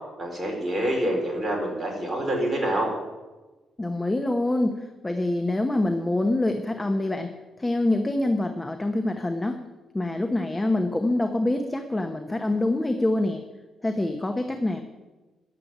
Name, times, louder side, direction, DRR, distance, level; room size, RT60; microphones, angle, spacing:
voice 1, 0.2-2.9, right 1 dB, 15° right, -2 dB, 4.5 m, -26 dB
voice 2, 3.8-9.6 9.9-13.4 13.8-14.8, left 2 dB, 15° left, 6 dB, 0.9 m, -25 dB
11.0 x 7.7 x 9.2 m, 1.2 s
cardioid pair, 100°, 0 cm